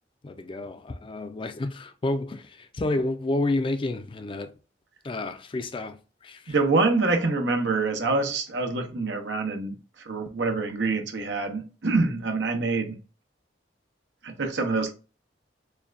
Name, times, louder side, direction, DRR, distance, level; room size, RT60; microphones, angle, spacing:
voice 1, 0.2-4.5 5.0-6.5, left 2 dB, 30° left, 0.4 m, -30 dB
voice 2, 6.5-9.8 10.0-13.0 14.2-14.9, right 3 dB, 85° right, 0.9 m, -25 dB
6.7 x 2.2 x 2.5 m
head